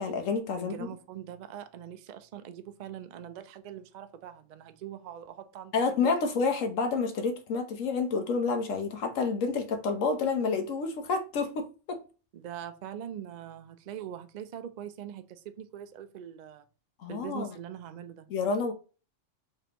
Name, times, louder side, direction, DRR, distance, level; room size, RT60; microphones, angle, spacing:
voice 1, 0.0-0.9 5.7-12.0 17.0-17.5 18.3-18.7, left 4 dB, 80° left, 1.2 m, -29 dB
voice 2, 0.6-5.7 12.3-16.7 17.1-18.3, right 10 dB, 90° right, 0.3 m, -42 dB
5.0 x 3.4 x 2.9 m
omnidirectional pair, 1.3 m